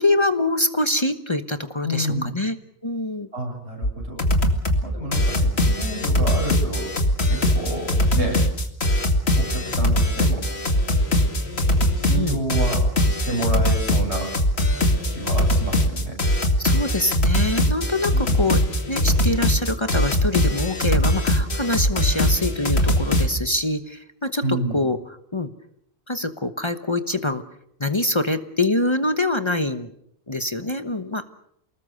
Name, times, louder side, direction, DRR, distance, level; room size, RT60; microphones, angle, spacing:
voice 1, 0.0-2.6 2.8-3.3 12.1-12.4 16.6-18.6 18.9-25.0 25.3-25.5 26.1-27.4 27.8-29.9 30.3-31.3, left 2 dB, 25° left, 9 dB, 1.1 m, -24 dB
voice 2, 1.8-2.3 3.3-4.2 4.8-6.9 7.3-8.4 9.4-10.4 12.0-12.8 13.1-14.3 15.1-16.1 18.1-18.4 24.4-24.8, right 1 dB, 85° right, 1 dB, 8.4 m, -29 dB
sound 1, 3.8-3.9 4.2-4.8 5.1-23.3, left 1 dB, 75° left, 2.5 m, -21 dB
29.0 x 19.5 x 6.7 m, 0.73 s
omnidirectional pair, 1.1 m